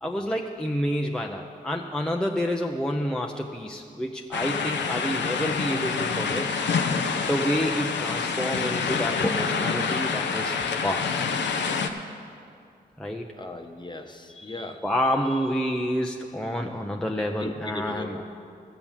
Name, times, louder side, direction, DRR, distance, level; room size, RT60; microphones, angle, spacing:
voice 1, 0.0-6.5 7.3-10.6 10.8-11.1 13.0-13.3 14.3-18.2, equal, 5° left, 1 dB, 0.8 m, -28 dB
sound 1, 4.3-11.9, left 5 dB, 85° left, 0.8 m, -27 dB
voice 2, 13.3-14.8 17.4-18.3, left 2 dB, 25° left, 4 dB, 1.1 m, -37 dB
14.0 x 6.9 x 7.4 m, 2.3 s
cardioid pair, 50°, 18 cm